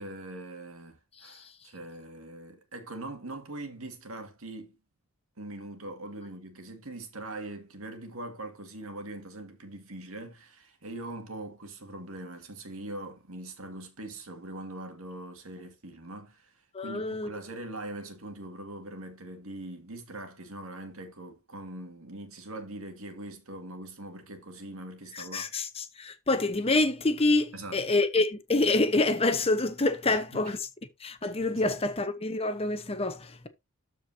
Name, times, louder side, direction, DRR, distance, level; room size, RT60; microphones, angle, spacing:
voice 1, 0.0-4.8 5.4-25.5 27.5-27.8 30.1-30.5 31.5-31.8, right 1 dB, 70° right, 2.1 m, -42 dB
voice 2, 16.7-17.3 25.1-30.6 31.0-33.5, left 2 dB, 25° left, 0.9 m, -27 dB
13.5 x 4.7 x 2.8 m
head